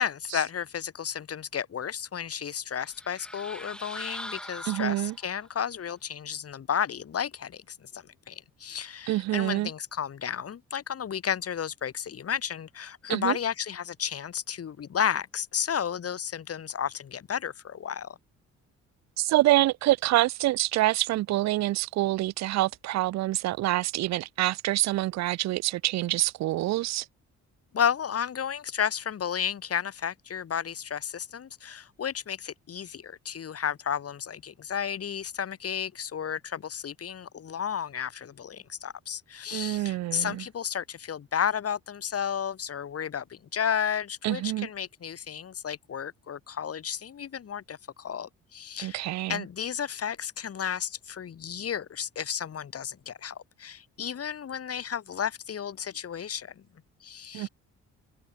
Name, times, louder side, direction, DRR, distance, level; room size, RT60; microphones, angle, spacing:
voice 1, 0.0-18.2 27.7-56.6 57.0-57.5, left 8 dB, 50° left, 3.2 m, -32 dB
speeder flyby, 2.8-5.5, equal, 5° left, 4.6 m, -41 dB
voice 2, 4.7-5.1 9.1-9.7 13.1-13.4 19.2-27.1 39.5-40.4 44.2-44.7 48.8-49.4 57.3-57.5, right 16 dB, 65° right, 0.5 m, -26 dB
cardioid pair, 90°, 30 cm